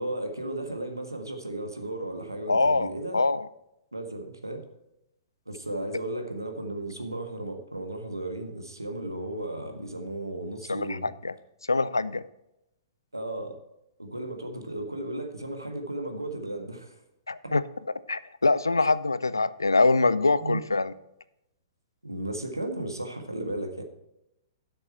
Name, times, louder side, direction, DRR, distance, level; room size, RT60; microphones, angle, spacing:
voice 1, 0.0-3.2 3.9-4.6 5.5-11.1 13.1-13.6 14.0-17.0 17.4-17.5 20.4-20.6 22.0-23.8, right 1 dB, 85° right, 5 dB, 1.6 m, -35 dB
voice 2, 2.5-3.5 10.7-11.3 11.7-12.2 17.3-17.6 18.1-20.9, left 3 dB, 80° left, 16 dB, 0.5 m, -24 dB
12.5 x 6.6 x 4.5 m, 0.85 s
figure-of-eight pair, 110°, 2 cm